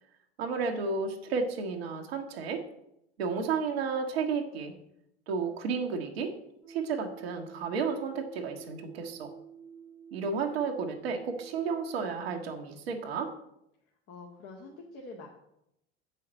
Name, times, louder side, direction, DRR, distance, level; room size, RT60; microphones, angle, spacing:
voice 1, 0.4-2.6 3.2-4.7 5.3-6.3 6.7-9.3 10.1-13.3, right 5 dB, 75° right, 3 dB, 1.4 m, -32 dB
sound 1, 6.6-12.7, right 7 dB, 85° left, 3.1 m, -49 dB
voice 2, 14.1-15.3, left 3 dB, 45° left, -1 dB, 1.9 m, -45 dB
7.6 x 5.7 x 7.6 m, 0.80 s
hypercardioid pair, 75°, 31 cm